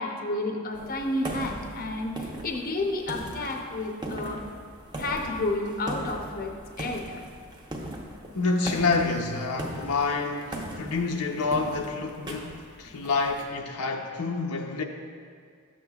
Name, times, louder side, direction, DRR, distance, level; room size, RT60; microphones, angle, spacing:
voice 1, 0.0-4.4 5.0-7.2, left 2 dB, 40° left, 0.6 m, -31 dB
sound 1, 0.7-13.4, right 1 dB, 20° right, 0.7 m, -39 dB
voice 2, 8.3-14.8, left 3 dB, 85° left, 0.6 m, -28 dB
12.0 x 7.2 x 2.3 m
head